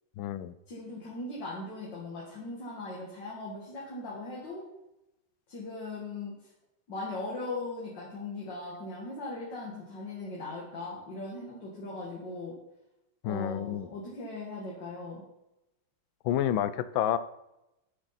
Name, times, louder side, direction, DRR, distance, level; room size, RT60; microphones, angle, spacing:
voice 1, 0.2-0.5 13.2-13.9 16.2-17.2, left 11 dB, 75° left, 14 dB, 1.2 m, -29 dB
voice 2, 0.7-4.6 5.5-6.4 6.9-12.5 13.2-15.2, left 2 dB, 55° left, -4 dB, 2.4 m, -39 dB
9.0 x 8.0 x 4.1 m, 0.90 s
omnidirectional pair, 2.4 m